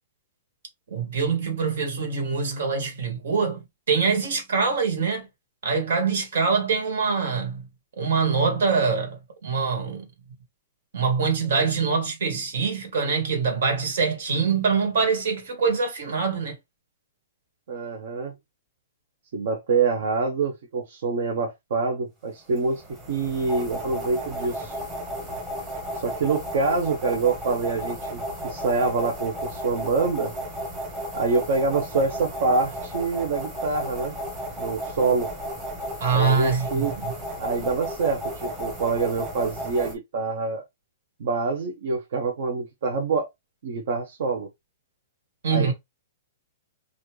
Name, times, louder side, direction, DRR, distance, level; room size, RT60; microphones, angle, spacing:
voice 1, 0.9-5.3 5.6-7.7 8.0-10.1 10.9-16.6 36.0-37.1 45.4-45.7, right 5 dB, 70° right, 2.0 m, -24 dB
voice 2, 17.7-18.3 19.3-22.8 23.1-24.8 26.0-30.3 31.1-34.2 34.6-35.3 36.1-36.9 37.4-40.6 41.2-43.3 43.6-44.5 45.5-45.7, right 4 dB, 55° right, 0.9 m, -26 dB
sound 1, 22.5-39.9, equal, 10° right, 1.2 m, -34 dB
4.1 x 2.5 x 3.1 m
hypercardioid pair, 170°, 0 cm